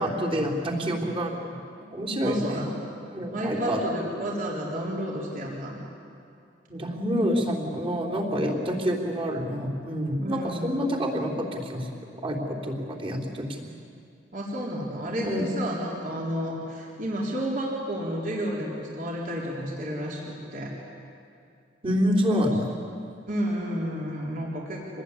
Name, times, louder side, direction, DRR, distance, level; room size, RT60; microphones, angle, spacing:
voice 1, 0.0-1.6 1.9-2.6 3.1-3.8 6.7-11.9 12.2-13.7 15.2-15.4 21.8-22.8, equal, 30° right, 0 dB, 3.7 m, -27 dB
voice 2, 2.2-2.8 3.3-5.8 10.2-10.8 14.3-20.7 23.3-25.0, equal, 45° right, -3 dB, 4.1 m, -31 dB
27.0 x 20.5 x 9.9 m, 2.4 s
head